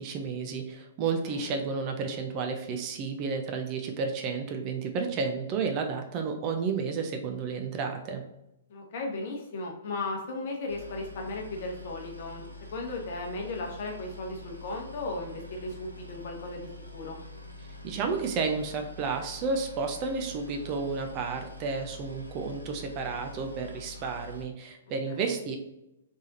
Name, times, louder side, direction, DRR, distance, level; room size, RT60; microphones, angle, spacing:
voice 1, 0.0-8.2 17.8-25.6, right 5 dB, 30° right, 4 dB, 0.5 m, -31 dB
voice 2, 8.7-17.2 25.1-25.2, left 2 dB, 45° left, 1 dB, 1.0 m, -36 dB
Boat Water vehicle, 10.7-24.4, left 2 dB, 90° right, 0.6 m, -46 dB
3.5 x 3.4 x 2.7 m, 0.90 s
figure-of-eight pair, 115°, 0 cm